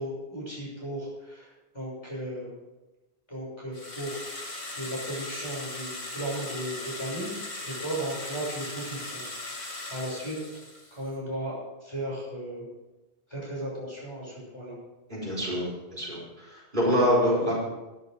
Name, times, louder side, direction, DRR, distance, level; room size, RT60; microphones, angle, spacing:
voice 1, 0.0-2.5 3.3-10.4 10.9-11.5 11.8-12.7 13.3-14.7 16.8-17.1, right 1 dB, 25° left, -5 dB, 6.3 m, -36 dB
sound 1, 3.7-11.1, left 2 dB, 60° left, 2.3 m, -39 dB
voice 2, 15.1-16.2 16.5-17.5, equal, 45° right, -5 dB, 5.1 m, -25 dB
13.0 x 12.0 x 5.1 m, 1.1 s
omnidirectional pair, 1.1 m